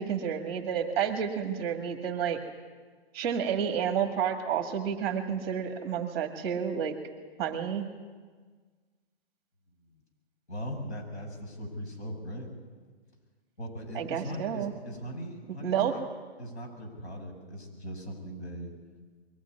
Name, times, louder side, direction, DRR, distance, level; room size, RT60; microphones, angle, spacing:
voice 1, 0.0-2.4 3.1-7.0 7.4-7.8 13.9-14.7 15.6-15.9, right 8 dB, 25° right, 4 dB, 1.9 m, -30 dB
voice 2, 10.5-12.5 13.6-16.0 16.4-18.7, equal, 85° left, 3 dB, 7.9 m, -39 dB
23.0 x 16.5 x 9.8 m, 1.5 s
hypercardioid pair, 165°, 33 cm